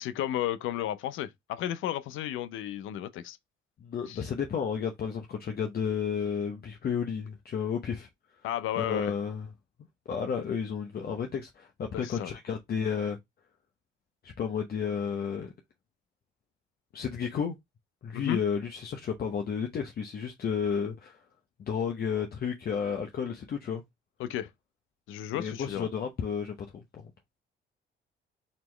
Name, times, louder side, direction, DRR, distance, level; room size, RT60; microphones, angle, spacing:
voice 1, 0.0-3.4 4.1-4.2 8.4-9.1 11.9-12.3 18.1-18.4 24.2-24.5 25.1-25.9, left 12 dB, 85° left, 0.6 m, -33 dB
voice 2, 3.8-8.1 8.8-9.5 10.1-13.2 14.2-15.5 16.9-17.6 18.0-21.2 21.6-23.8 25.3-27.1, left 7 dB, 50° left, 0.8 m, -32 dB
4.2 x 2.9 x 3.2 m
cardioid pair, 90°, 20 cm